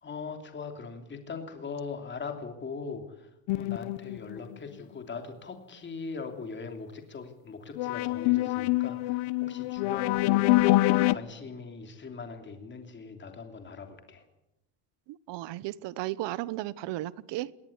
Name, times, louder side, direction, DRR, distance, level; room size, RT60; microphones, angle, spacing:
voice 1, 0.0-10.7 11.1-14.2, left 4 dB, 25° left, 6 dB, 3.1 m, -41 dB
sound 1, 3.5-4.6 7.8-11.1, left 19 dB, 75° left, 0.9 m, -25 dB
voice 2, 15.1-17.5, right 16 dB, 60° right, 20 dB, 1.1 m, -35 dB
20.5 x 19.0 x 9.6 m, 0.87 s
cardioid pair, 150°, 47 cm